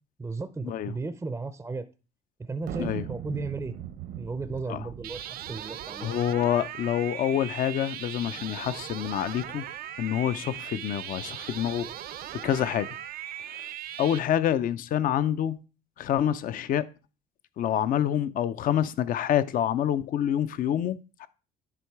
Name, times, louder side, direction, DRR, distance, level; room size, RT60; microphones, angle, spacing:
voice 1, 0.2-1.9 2.4-3.8 4.2-6.1, right 3 dB, 15° right, 0.5 m, -35 dB
sound 1, 2.6-6.3, right 10 dB, 85° right, 1.0 m, -40 dB
sound 2, 5.0-14.2, right 11 dB, 60° right, 0.5 m, -39 dB
voice 2, 6.0-9.6 10.0-11.9 12.4-12.9 13.5-13.6 14.0-15.6 16.0-16.9 17.6-21.3, left 10 dB, 55° left, 0.5 m, -27 dB
10.0 x 3.8 x 4.6 m
cardioid pair, 110°, 17 cm